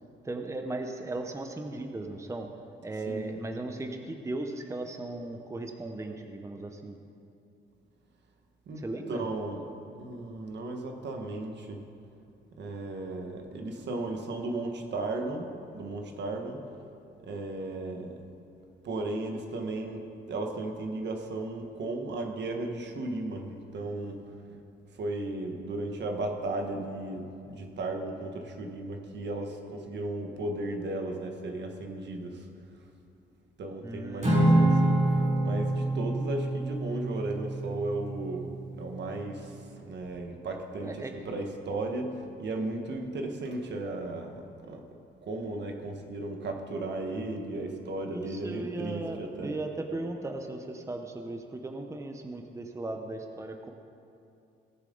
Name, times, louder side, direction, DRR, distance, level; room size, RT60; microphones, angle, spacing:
voice 1, 0.2-2.5 2.8-6.9 8.8-9.2 33.8-34.7 40.8-41.1 48.1-53.7, right 2 dB, 15° right, 4 dB, 0.8 m, -37 dB
voice 2, 3.1-3.4 8.7-9.6 10.0-11.8 12.6-16.6 17.2-18.2 18.8-24.2 24.9-32.5 33.6-38.5 38.8-44.8 45.2-49.6, right 2 dB, 60° right, 3 dB, 1.5 m, -35 dB
Acoustic guitar / Strum, 34.2-38.7, right 1 dB, 35° right, 2.8 m, -26 dB
17.5 x 7.3 x 3.9 m, 2.6 s
cardioid pair, 90°, 20 cm